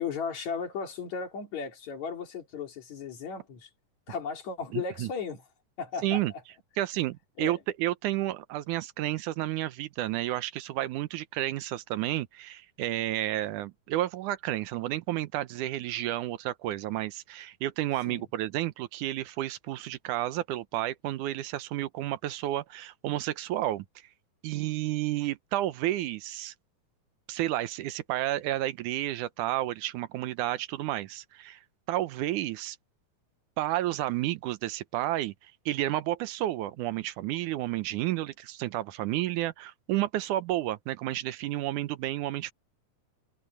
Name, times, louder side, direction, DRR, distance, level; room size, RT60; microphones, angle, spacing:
voice 1, 0.0-3.7 4.1-5.4 5.8-6.4 7.4-7.6 18.0-18.3, left 6 dB, 65° left, 4.1 m, -35 dB
voice 2, 4.7-5.1 6.0-6.3 6.8-23.9 24.4-26.5 27.3-31.6 31.9-32.8 33.6-42.5, right 14 dB, 85° right, 2.3 m, -31 dB
omnidirectional pair, 3.5 m